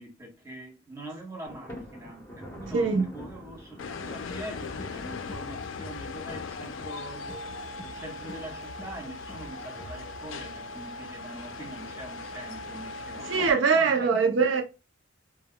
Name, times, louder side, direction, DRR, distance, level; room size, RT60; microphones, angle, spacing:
voice 1, 0.0-7.4 7.8-14.1, right 1 dB, 15° right, 0.9 m, -43 dB
Thunder, 1.5-6.0, equal, 15° left, 0.9 m, -45 dB
voice 2, 2.7-3.0 13.3-14.6, right 5 dB, 85° right, 0.5 m, -22 dB
sound 1, 3.8-13.5, left 3 dB, 85° left, 0.4 m, -39 dB
sound 2, 4.1-10.2, left 2 dB, 30° left, 0.5 m, -46 dB
2.2 x 2.2 x 3.5 m
head